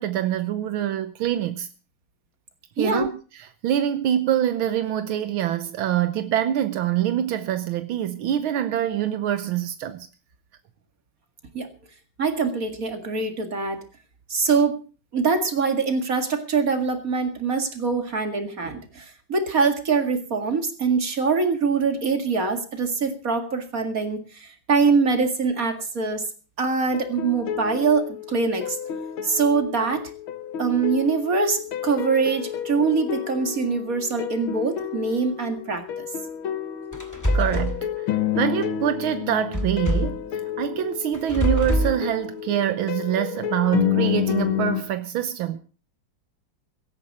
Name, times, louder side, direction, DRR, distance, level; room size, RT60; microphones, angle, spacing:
voice 1, 0.0-1.7 2.8-3.2 3.6-10.1 37.3-37.9 38.4-40.2 40.6-45.6, right 11 dB, 80° right, 1.7 m, -25 dB
voice 2, 2.8-3.1 11.5-11.7 12.2-13.8 14.3-14.8 15.1-26.3 26.6-28.8 29.2-30.0 30.6-36.1, right 4 dB, 45° right, 2.4 m, -23 dB
sound 1, 26.9-44.8, left 10 dB, 80° left, 2.0 m, -30 dB
sound 2, 36.9-37.8 39.5-40.2 41.1-42.0, equal, 10° left, 1.9 m, -24 dB
17.0 x 13.5 x 4.1 m
omnidirectional pair, 2.2 m